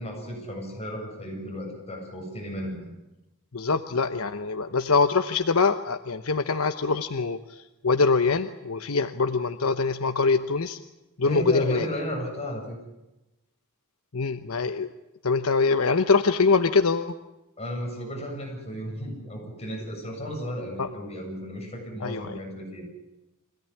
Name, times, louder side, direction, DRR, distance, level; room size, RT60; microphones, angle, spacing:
voice 1, 0.0-3.0 11.2-12.8 17.6-22.9, equal, 30° left, 1 dB, 7.7 m, -34 dB
voice 2, 3.5-10.8 11.2-11.9 14.1-14.9 15.2-17.1 20.8-20.9 22.0-22.4, left 4 dB, 85° left, 8 dB, 1.0 m, -24 dB
25.5 x 17.0 x 10.0 m, 0.99 s
head